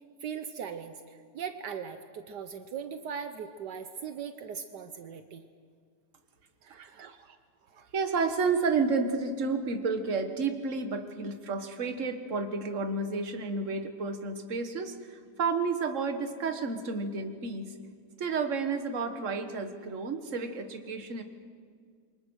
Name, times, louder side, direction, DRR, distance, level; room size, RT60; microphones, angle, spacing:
voice 1, 0.2-5.4 6.7-7.4 7.7-7.9, right 7 dB, 75° right, 9 dB, 1.5 m, -40 dB
voice 2, 7.9-17.7 18.2-21.2, right 4 dB, 45° right, 7 dB, 1.8 m, -31 dB
27.5 x 24.0 x 6.3 m, 2.1 s
omnidirectional pair, 1.8 m